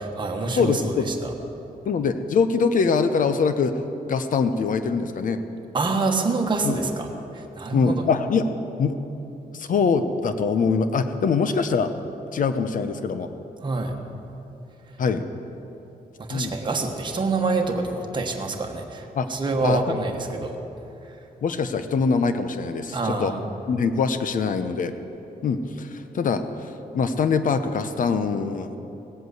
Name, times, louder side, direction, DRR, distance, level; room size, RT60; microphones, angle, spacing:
voice 1, 0.0-1.3 5.7-7.1 7.3-8.0 13.6-14.0 16.2-20.6 22.9-23.4, right 3 dB, 30° right, 2 dB, 1.3 m, -26 dB
voice 2, 0.6-1.1 1.8-3.7 4.1-5.4 6.6-6.8 7.7-8.5 8.8-9.0 9.5-11.9 12.3-13.3 15.0-15.2 16.3-16.6 19.2-19.3 19.6-19.8 21.4-23.3 23.7-24.9 25.4-28.8, left 5 dB, 60° left, 10 dB, 0.8 m, -23 dB
17.5 x 7.9 x 8.0 m, 3.0 s
wide cardioid pair, 155°, 16 cm